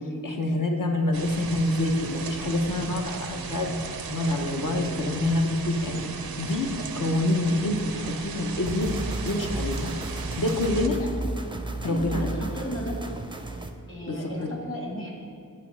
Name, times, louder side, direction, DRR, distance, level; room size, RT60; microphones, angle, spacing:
voice 1, 0.2-3.8 4.1-6.0 6.4-8.9 9.2-9.9 10.4-11.0 11.8-12.3 14.1-14.2, left 1 dB, 60° left, 2 dB, 0.8 m, -26 dB
sound 1, 1.1-10.9, right 5 dB, 80° right, 0.5 m, -36 dB
sound 2, 8.6-13.7, right 2 dB, 15° right, 0.4 m, -34 dB
voice 2, 10.7-11.1 11.8-13.0 13.9-15.1, equal, 35° left, -2 dB, 1.7 m, -35 dB
8.2 x 3.2 x 6.2 m, 2.4 s
wide cardioid pair, 40°, 35 cm